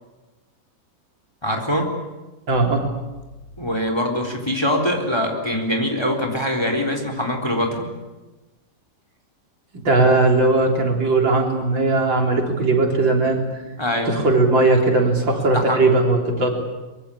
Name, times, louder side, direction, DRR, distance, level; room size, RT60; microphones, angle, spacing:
voice 1, 1.4-1.9 3.6-7.9 13.8-14.2 15.5-15.8, equal, 15° left, 4 dB, 3.9 m, -23 dB
voice 2, 2.5-2.8 9.7-13.4 14.0-16.5, right 2 dB, 80° right, 1 dB, 4.6 m, -18 dB
24.5 x 23.0 x 8.6 m, 1.1 s
omnidirectional pair, 2.0 m